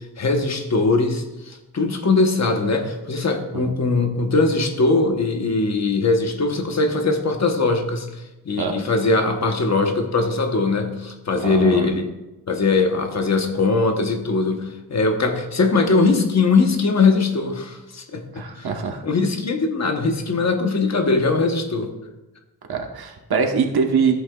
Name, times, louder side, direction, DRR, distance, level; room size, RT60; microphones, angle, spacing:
voice 1, 0.2-8.1 8.4-12.1 12.5-18.7 19.0-21.9, left 3 dB, 45° left, 5 dB, 1.0 m, -21 dB
voice 2, 11.4-12.0 18.3-19.0 22.7-24.1, right 5 dB, 85° right, 2 dB, 1.2 m, -23 dB
14.5 x 8.1 x 2.3 m, 1.0 s
wide cardioid pair, 165°, 37 cm